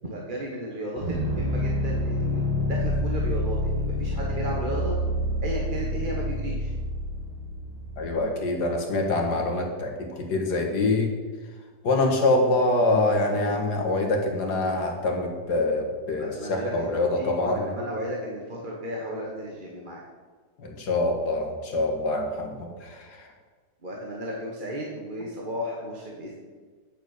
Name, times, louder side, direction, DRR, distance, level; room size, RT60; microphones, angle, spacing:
voice 1, 0.0-5.0 5.4-6.7 16.2-20.0 23.8-26.4, equal, 30° right, -2 dB, 1.4 m, -34 dB
sound 1, 1.0-8.2, left 1 dB, 75° right, 3.1 m, -28 dB
voice 2, 8.0-11.1 11.8-17.7 20.6-23.3, left 2 dB, 65° left, 2 dB, 2.1 m, -25 dB
9.3 x 7.0 x 6.5 m, 1.5 s
omnidirectional pair, 1.9 m